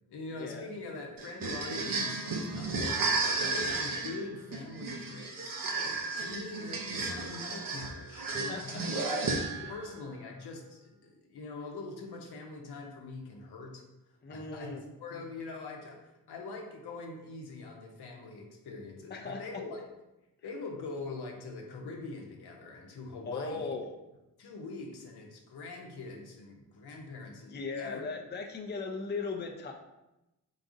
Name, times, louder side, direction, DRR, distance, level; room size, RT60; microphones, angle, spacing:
voice 1, 0.1-9.0 9.7-19.8 20.4-23.7 24.4-28.0, left 3 dB, 70° left, 1 dB, 0.9 m, -43 dB
sound 1, 1.2-9.8, right 3 dB, 55° right, 0.8 m, -33 dB
voice 2, 8.5-8.8 9.6-9.7 14.2-14.8 19.1-19.6 23.2-23.9 27.5-29.7, left 4 dB, 25° left, 2 dB, 0.6 m, -38 dB
3.9 x 3.7 x 2.6 m, 0.96 s
supercardioid pair, 50°, 40 cm